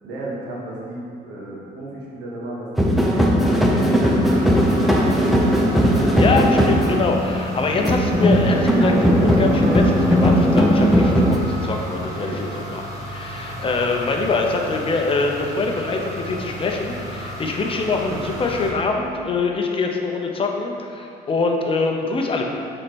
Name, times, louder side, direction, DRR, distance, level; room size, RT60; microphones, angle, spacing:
voice 1, 0.0-6.4 12.1-12.6, right 1 dB, 90° right, -5 dB, 1.6 m, -34 dB
sound 1, 2.8-11.4, equal, ahead, 0.7 m, -17 dB
sound 2, 4.2-18.7, right 1 dB, 20° right, 1.4 m, -33 dB
voice 2, 6.2-12.8 13.1-22.4, left 3 dB, 30° left, 2 dB, 0.7 m, -24 dB
4.9 x 4.3 x 6.0 m, 2.5 s
cardioid pair, 110°, 17 cm